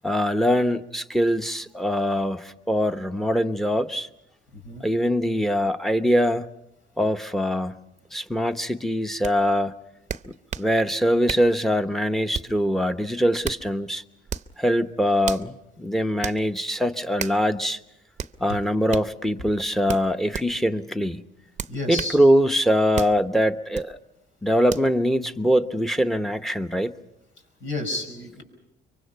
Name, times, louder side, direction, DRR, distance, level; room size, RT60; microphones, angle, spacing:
voice 1, 0.0-4.1 4.8-6.5 7.0-7.8 8.1-9.7 10.3-14.0 14.6-17.8 18.4-21.2 21.9-24.0 24.4-26.9, equal, ahead, 1.0 m, -23 dB
voice 2, 4.5-4.8 18.5-18.6 21.7-22.2 27.6-28.4, left 2 dB, 75° left, 5.5 m, -31 dB
sound 1, 9.2-9.4 10.1-10.7 11.3-11.5 12.3-12.6 13.2-13.7 14.3-14.5 15.2-15.5 16.2-16.4 17.2-17.4 18.2-18.4 18.9-19.1 19.9-20.5 21.6-22.2 23.0-23.2 23.7-23.9 24.7-24.9, right 7 dB, 35° right, 0.7 m, -32 dB
24.0 x 24.0 x 5.9 m
cardioid pair, 90°, 20 cm